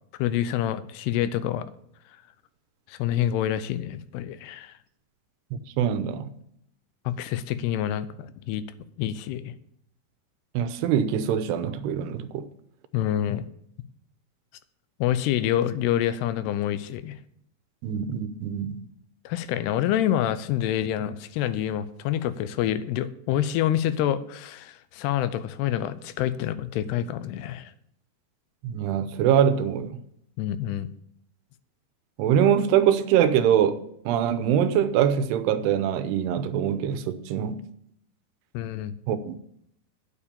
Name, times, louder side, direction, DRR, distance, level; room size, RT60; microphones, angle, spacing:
voice 1, 0.2-1.7 2.9-4.7 7.1-8.6 9.0-9.5 12.9-13.4 15.0-17.2 19.3-27.7 30.4-30.9 38.5-38.9, left 11 dB, 85° left, 2.7 m, -27 dB
voice 2, 5.5-6.3 10.5-12.5 17.8-18.8 28.6-30.0 32.2-33.8 34.1-37.6 39.1-39.3, right 9 dB, 90° right, 2.9 m, -23 dB
9.8 x 7.2 x 6.9 m
omnidirectional pair, 4.6 m